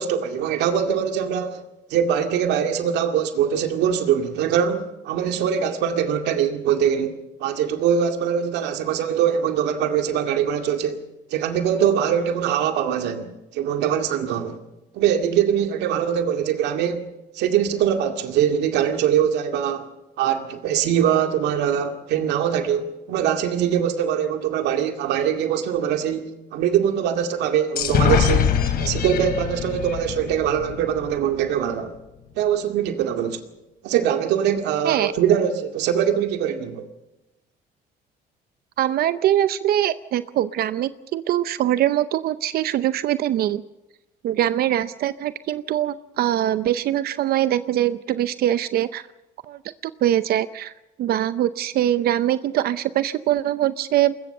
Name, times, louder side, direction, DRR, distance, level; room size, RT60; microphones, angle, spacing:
voice 1, 0.0-1.6 1.9-11.0 11.3-14.6 14.9-17.1 17.4-19.9 20.2-28.5 28.8-31.9 32.4-33.4 33.8-36.9, right 9 dB, 85° right, 2.1 m, -22 dB
sound 1, 27.8-31.4, left 8 dB, 65° left, 3.3 m, -23 dB
voice 2, 38.8-43.6 44.2-49.0 49.5-50.7 51.0-54.1, right 12 dB, 65° right, 0.7 m, -22 dB
21.0 x 20.5 x 6.7 m
cardioid pair, 110°, 17 cm